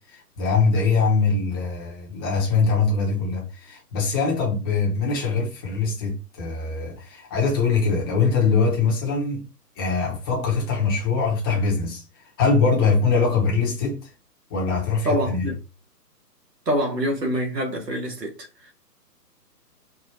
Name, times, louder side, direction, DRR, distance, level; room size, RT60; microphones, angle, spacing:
voice 1, 0.1-9.5 9.8-12.0 12.4-14.1 14.5-15.5, left 4 dB, 15° left, 0.8 m, -22 dB
voice 2, 15.0-15.6 16.6-18.7, equal, 80° right, 1.6 m, -26 dB
4.6 x 2.5 x 2.8 m
figure-of-eight pair, 135°, 48 cm